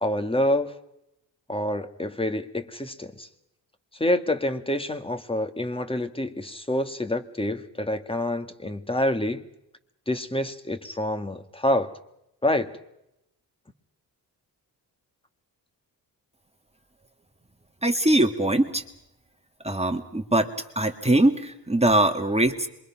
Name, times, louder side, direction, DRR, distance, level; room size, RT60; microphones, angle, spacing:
voice 1, 0.0-0.7 1.5-3.3 3.9-9.4 10.1-12.0 12.4-12.7, left 1 dB, 15° left, 8 dB, 2.0 m, -27 dB
voice 2, 17.8-18.8 19.6-20.5 20.8-22.7, right 1 dB, 15° right, 4 dB, 2.1 m, -22 dB
27.0 x 23.5 x 6.0 m, 0.83 s
cardioid pair, 75°, 42 cm